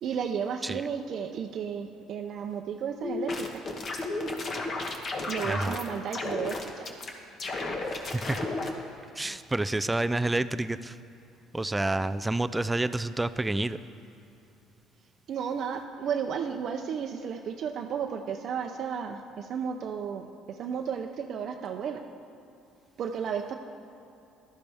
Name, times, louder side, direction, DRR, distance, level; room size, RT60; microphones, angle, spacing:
voice 1, 0.0-3.6 5.3-6.9 15.3-22.0 23.0-23.5, right 7 dB, 55° right, 3 dB, 0.6 m, -33 dB
sound 1, 3.0-5.9 6.1-7.1 7.4-8.7, left 2 dB, 40° left, 1.3 m, -33 dB
voice 2, 5.4-5.8 8.1-8.4 9.2-11.0 11.5-13.8, right 2 dB, 10° right, 13 dB, 0.3 m, -28 dB
15.5 x 12.0 x 3.5 m, 2.7 s
cardioid pair, 110°, 0 cm